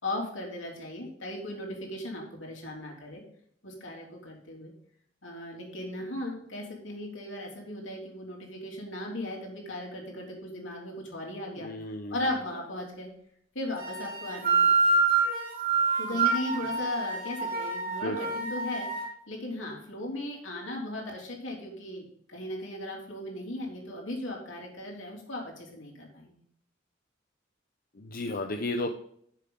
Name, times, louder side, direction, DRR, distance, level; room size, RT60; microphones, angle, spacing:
voice 1, 0.0-3.2 3.6-4.7 5.2-11.7 12.1-13.1 13.5-14.7 16.0-18.9 19.3-26.4, left 1 dB, 80° left, -1 dB, 3.3 m, -37 dB
voice 2, 11.6-12.2 18.0-18.2 28.0-28.9, left 2 dB, 50° left, 4 dB, 0.8 m, -33 dB
sound 1, 13.8-19.1, right 4 dB, 50° right, 3.6 m, -27 dB
11.0 x 7.3 x 3.8 m, 0.68 s
head